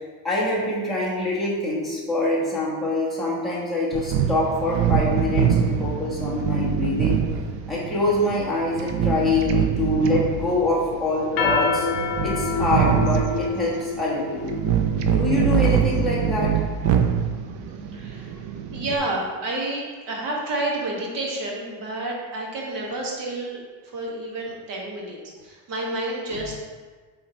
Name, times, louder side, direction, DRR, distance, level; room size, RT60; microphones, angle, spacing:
voice 1, 0.0-7.2 7.7-11.9 12.2-14.5 15.1-16.5 26.3-26.4, left 2 dB, ahead, -8 dB, 1.5 m, -25 dB
sound 1, 3.9-19.0, right 8 dB, 85° right, 0.8 m, -24 dB
sound 2, 11.2-16.0, left 5 dB, 50° left, 0.8 m, -27 dB
voice 2, 17.9-18.3 18.7-26.6, right 2 dB, 50° right, -2 dB, 1.7 m, -30 dB
8.1 x 3.8 x 4.5 m, 1.5 s
cardioid pair, 175°, 42 cm